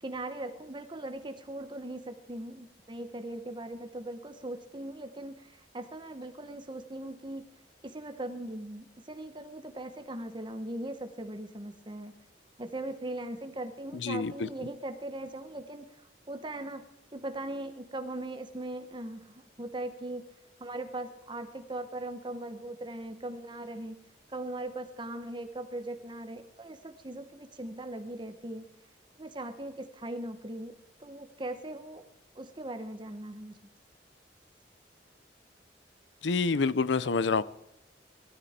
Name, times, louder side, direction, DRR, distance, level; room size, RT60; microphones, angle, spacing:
voice 1, 0.0-7.5 7.8-12.1 12.6-15.9 16.3-16.8 17.1-20.2 20.6-24.0 24.3-28.7 29.2-30.7 31.0-32.0 32.3-33.6, right 1 dB, 25° right, 8 dB, 1.0 m, -39 dB
voice 2, 14.0-14.5 36.2-37.4, left 4 dB, 90° left, 18 dB, 0.6 m, -27 dB
19.0 x 13.5 x 4.4 m, 0.86 s
head